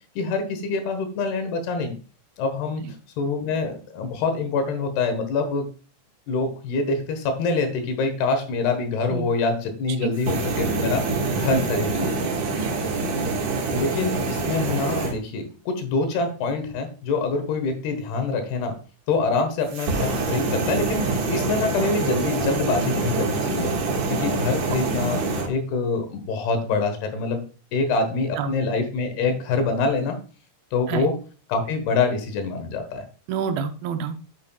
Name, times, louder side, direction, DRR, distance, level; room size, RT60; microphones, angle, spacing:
voice 1, 0.2-1.9 2.4-2.8 3.2-5.7 6.3-12.1 13.7-18.8 19.1-23.7 24.1-25.2 25.5-27.4 27.7-30.2 30.7-31.1 31.5-33.1, left 4 dB, 85° left, 7 dB, 3.4 m, -25 dB
sound 1, 10.1-15.1 19.7-25.5, right 3 dB, 55° right, 2.8 m, -25 dB
voice 2, 11.3-11.7 12.6-12.7 24.7-24.8 28.4-28.5 30.9-31.1 33.3-34.2, right 7 dB, 80° right, 7 dB, 2.4 m, -28 dB
8.7 x 7.9 x 2.3 m, 0.36 s
omnidirectional pair, 4.5 m